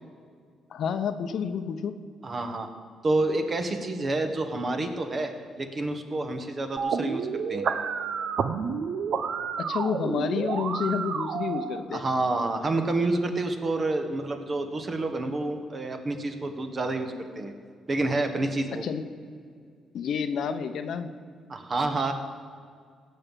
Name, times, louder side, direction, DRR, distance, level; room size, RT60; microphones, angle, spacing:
voice 1, 0.7-2.0 9.6-12.0 18.8-19.0 19.9-21.1, left 7 dB, 65° left, 9 dB, 0.8 m, -29 dB
voice 2, 2.2-2.7 3.0-7.6 11.9-17.5 17.9-18.8 21.5-22.1, right 2 dB, 35° right, 6 dB, 1.5 m, -28 dB
sound 1, 6.8-11.8, right 6 dB, 65° right, 0.8 m, -30 dB
17.0 x 5.7 x 7.4 m, 2.1 s
cardioid pair, 90°, 0 cm